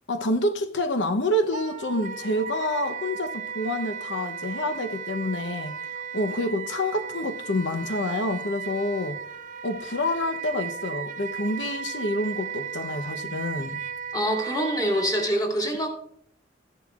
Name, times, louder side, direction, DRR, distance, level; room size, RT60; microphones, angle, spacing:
voice 1, 0.1-5.8 6.1-9.2 9.6-13.8, left 1 dB, 85° left, 0.8 m, -28 dB
Wind instrument woodwind instrument, 1.5-15.3, right 7 dB, 45° right, 0.6 m, -36 dB
voice 2, 14.1-15.9, equal, 20° left, 2.3 m, -25 dB
14.0 x 11.0 x 2.4 m
head